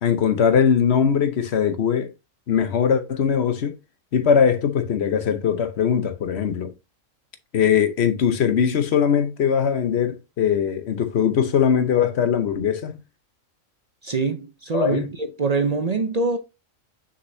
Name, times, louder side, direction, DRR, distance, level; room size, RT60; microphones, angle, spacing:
voice 1, 0.0-2.1 2.5-3.7 4.1-6.7 7.5-13.0 14.7-15.1, left 7 dB, 55° left, 1.1 m, -20 dB
voice 2, 14.0-16.4, right 4 dB, 50° right, 0.5 m, -24 dB
6.5 x 5.4 x 2.7 m
omnidirectional pair, 1.4 m